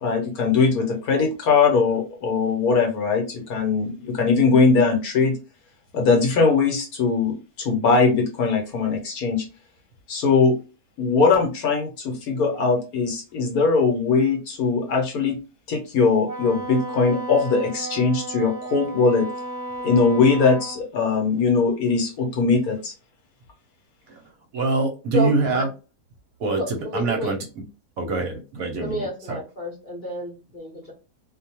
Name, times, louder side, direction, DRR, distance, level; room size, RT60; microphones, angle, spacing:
voice 1, 0.0-5.4 5.9-9.4 10.1-10.6 11.0-15.4 15.7-19.3 19.8-22.9, left 4 dB, 65° left, 2 dB, 1.1 m, -20 dB
Wind instrument woodwind instrument, 16.2-20.8, right 2 dB, 25° right, 1.2 m, -34 dB
voice 2, 24.5-25.7 26.4-27.4 28.0-29.4, right 3 dB, 65° right, 2 dB, 1.0 m, -25 dB
voice 3, 25.1-25.6 26.6-27.3 28.7-30.9, equal, 40° left, -2 dB, 0.8 m, -30 dB
2.6 x 2.2 x 2.8 m, 0.32 s
omnidirectional pair, 1.8 m